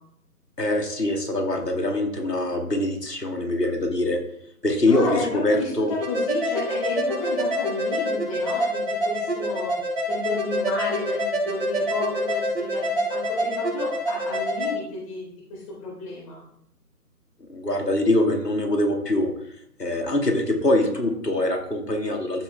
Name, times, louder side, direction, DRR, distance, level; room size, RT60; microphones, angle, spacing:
voice 1, 0.6-4.2 4.6-5.2 5.4-5.9 17.4-19.3 19.8-22.4, left 1 dB, 90° left, 2 dB, 2.5 m, -23 dB
voice 2, 4.9-9.7 10.1-16.4, left 2 dB, 20° left, -5 dB, 4.0 m, -32 dB
sound 1, 6.0-14.7, equal, 35° right, 4.1 m, -26 dB
14.0 x 6.4 x 3.5 m, 0.70 s
figure-of-eight pair, 155°, 47 cm